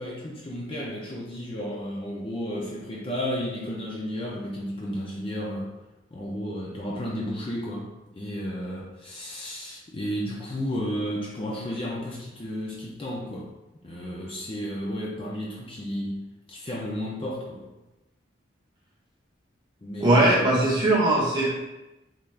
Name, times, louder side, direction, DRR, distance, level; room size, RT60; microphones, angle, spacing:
voice 1, 0.0-5.7 6.1-7.9 8.2-13.5 13.7-16.2 16.5-17.7 19.8-20.4, equal, 30° left, -4 dB, 0.5 m, -33 dB
voice 2, 20.0-21.5, right 1 dB, 20° right, -6 dB, 0.9 m, -20 dB
3.6 x 3.3 x 2.4 m, 1.0 s
head